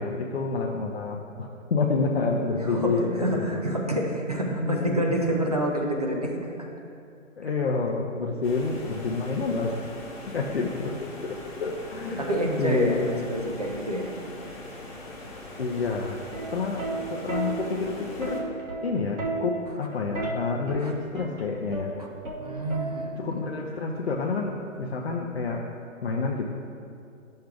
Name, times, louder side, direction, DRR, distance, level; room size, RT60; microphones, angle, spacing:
voice 1, 0.0-3.6 4.5-5.2 7.4-9.8 10.3-10.9 11.2-12.3 12.6-13.2 15.6-16.2 16.5-16.8 17.1-18.5 18.8-21.9 23.2-25.6 26.0-26.5, left 4 dB, 50° left, -2 dB, 0.6 m, -28 dB
voice 2, 2.6-6.7 10.7-10.9 12.2-14.1 20.8-20.9 22.0-22.1 22.4-23.2 23.5-23.6, right 1 dB, 30° right, -1 dB, 0.5 m, -28 dB
sound 1, 8.4-18.4, left 1 dB, 30° left, 1.1 m, -41 dB
Plucked string instrument, 16.3-23.4 24.4-24.8, right 3 dB, 70° right, 1.5 m, -34 dB
10.0 x 6.5 x 2.3 m, 2.5 s
hypercardioid pair, 170°, 40 cm